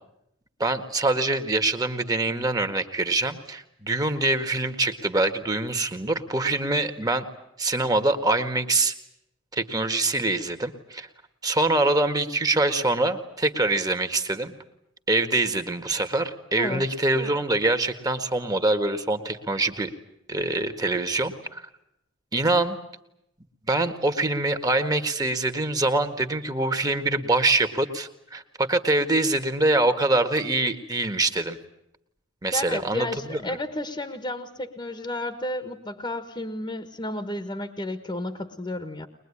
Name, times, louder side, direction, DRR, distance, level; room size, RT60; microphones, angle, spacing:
voice 1, 0.6-7.3 7.6-8.9 9.5-11.1 11.4-14.5 15.1-19.9 20.3-21.7 22.3-22.8 23.7-31.6 32.4-33.6, right 2 dB, 20° right, 7 dB, 1.7 m, -24 dB
voice 2, 16.5-16.9 32.5-39.1, left 1 dB, 20° left, 8 dB, 1.4 m, -32 dB
22.0 x 22.0 x 9.9 m, 0.80 s
head